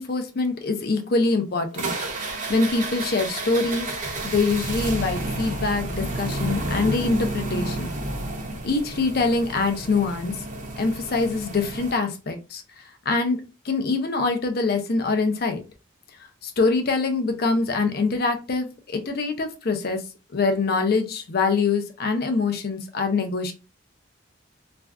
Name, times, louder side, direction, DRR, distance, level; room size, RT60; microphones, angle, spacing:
voice 1, 0.0-1.9 2.5-3.9 4.2-7.9 8.6-10.3 10.8-12.6 13.1-13.4 13.6-15.6 16.4-20.0 20.3-23.5, left 3 dB, 50° left, 6 dB, 0.5 m, -24 dB
sound 1, 1.7-11.9, right 2 dB, 40° right, 0.6 m, -31 dB
2.5 x 2.3 x 3.3 m, 0.30 s
head